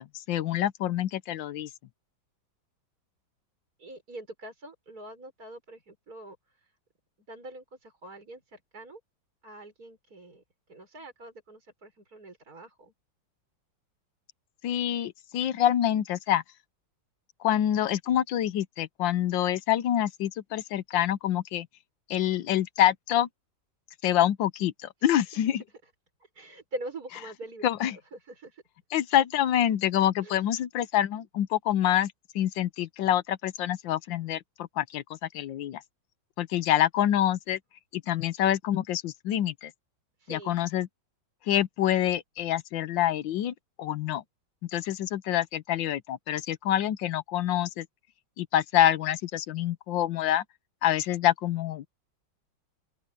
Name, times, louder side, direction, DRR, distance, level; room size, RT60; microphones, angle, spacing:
voice 1, 0.3-1.7 14.6-16.4 17.4-21.7 22.1-23.3 24.0-25.6 27.6-28.0 28.9-35.8 36.4-37.6 37.9-39.7 40.3-40.9 41.5-44.2 44.7-47.9 48.4-50.4 50.8-51.9, left 11 dB, 75° left, 1.5 m, -26 dB
voice 2, 3.8-6.7 7.3-9.0 9.4-10.4 10.7-12.9 26.2-28.6 30.2-30.4 40.2-40.6, right 1 dB, 50° right, 6.6 m, -44 dB
open air
omnidirectional pair, 2.1 m